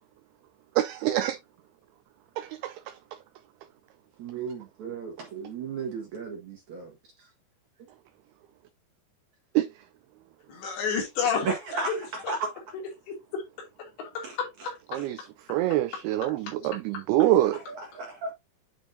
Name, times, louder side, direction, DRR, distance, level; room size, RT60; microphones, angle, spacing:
voice 1, 0.8-1.4 2.4-2.7 9.6-9.7 14.9-15.2 15.5-17.6, right 14 dB, 85° right, 2.2 m, -25 dB
voice 2, 4.2-6.9 11.4-12.5 14.2-14.4 14.9-15.1 17.3-18.3, right 4 dB, 60° right, 2.1 m, -34 dB
voice 3, 10.5-11.5 11.8-12.1 13.1-13.4 14.0-14.7 16.9-17.0, left 6 dB, 80° left, 4.9 m, -30 dB
9.2 x 5.2 x 2.7 m
omnidirectional pair, 5.0 m